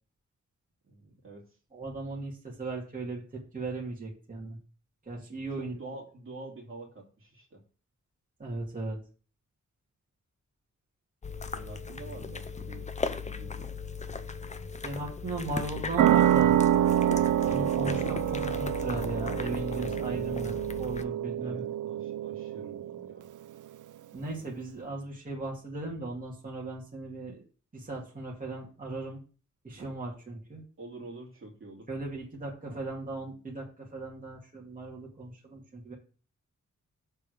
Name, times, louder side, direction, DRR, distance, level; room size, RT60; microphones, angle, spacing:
voice 1, 0.9-1.4 5.6-7.6 11.5-13.7 21.4-23.3 30.8-31.9, right 2 dB, 45° right, 0 dB, 2.5 m, -47 dB
voice 2, 1.7-4.6 5.1-5.8 8.4-9.0 14.8-16.6 17.4-21.7 24.1-27.4 27.7-29.2 29.6-30.6 31.9-35.9, right 2 dB, 30° right, -4 dB, 2.3 m, -37 dB
sound 1, 11.2-21.0, left 5 dB, 25° left, 0.6 m, -38 dB
sound 2, 16.0-23.2, right 11 dB, 85° right, 0.5 m, -27 dB
6.7 x 4.5 x 6.4 m, 0.38 s
wide cardioid pair, 120°, 30 cm